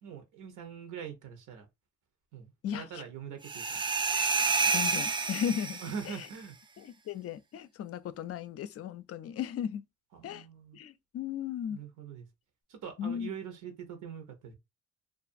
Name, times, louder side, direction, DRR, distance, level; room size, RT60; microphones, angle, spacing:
voice 1, 0.0-1.7 2.3-3.8 5.8-6.6 10.1-10.8 11.7-12.3 12.7-14.5, right 7 dB, 80° right, 0.8 m, -43 dB
voice 2, 2.6-3.0 4.7-6.2 6.8-9.8 10.2-10.5 10.7-11.8 13.0-13.3, left 9 dB, 50° left, 0.4 m, -36 dB
sound 1, 3.4-6.2, right 4 dB, 15° right, 0.3 m, -29 dB
2.4 x 2.4 x 2.5 m
cardioid pair, 90°, 30 cm